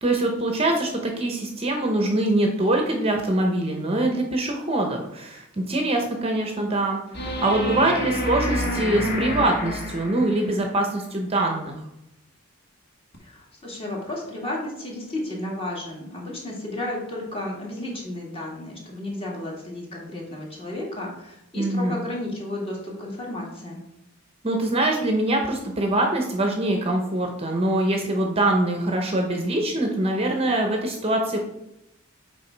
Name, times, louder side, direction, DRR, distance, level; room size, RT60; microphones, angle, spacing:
voice 1, 0.0-11.8 21.6-21.9 24.4-31.4, right 1 dB, 25° right, 2 dB, 0.8 m, -23 dB
sound 1, 7.1-10.5 13.1-13.2, equal, 50° left, 1.4 m, -28 dB
voice 2, 13.2-23.8, left 1 dB, 25° left, -2 dB, 1.8 m, -33 dB
6.8 x 4.6 x 4.5 m, 0.84 s
head